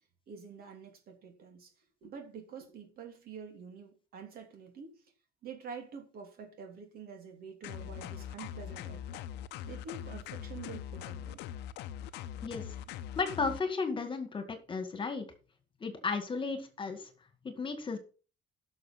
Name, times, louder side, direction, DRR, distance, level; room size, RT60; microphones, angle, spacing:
voice 1, 0.3-1.7 2.0-5.0 5.4-9.2 9.7-11.4, right 6 dB, 65° right, 3.0 m, -47 dB
sound 1, 7.6-13.6, left 10 dB, 90° left, 0.7 m, -42 dB
voice 2, 13.2-15.2 15.8-17.1 17.4-18.0, left 4 dB, 30° left, 1.9 m, -34 dB
11.5 x 6.4 x 5.6 m
cardioid pair, 110°, 17 cm